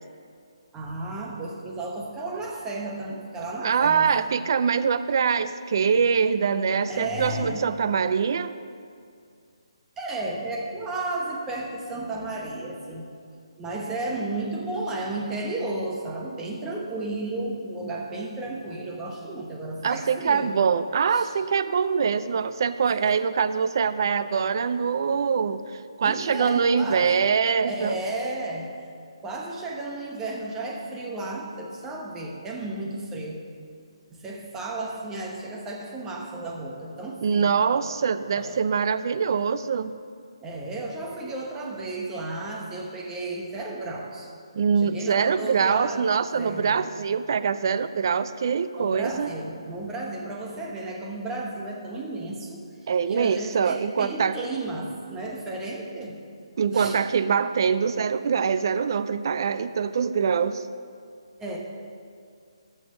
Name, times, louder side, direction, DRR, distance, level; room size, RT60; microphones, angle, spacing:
voice 1, 0.7-4.1 6.9-7.7 10.0-13.0 13.6-20.6 21.1-21.3 22.8-23.2 26.0-27.2 27.7-28.7 29.2-33.4 34.1-37.5 38.3-38.6 40.4-44.3 44.8-46.1 46.4-46.9 48.8-52.7 53.1-56.2 56.7-57.0 61.4-61.6, right 2 dB, 10° right, -1 dB, 1.0 m, -33 dB
voice 2, 3.6-8.5 19.8-25.6 26.0-28.0 37.2-39.9 44.5-49.3 52.9-54.4 56.6-60.6, right 6 dB, 45° right, 13 dB, 0.4 m, -24 dB
13.5 x 5.8 x 6.5 m, 2.3 s
hypercardioid pair, 165°, 3 cm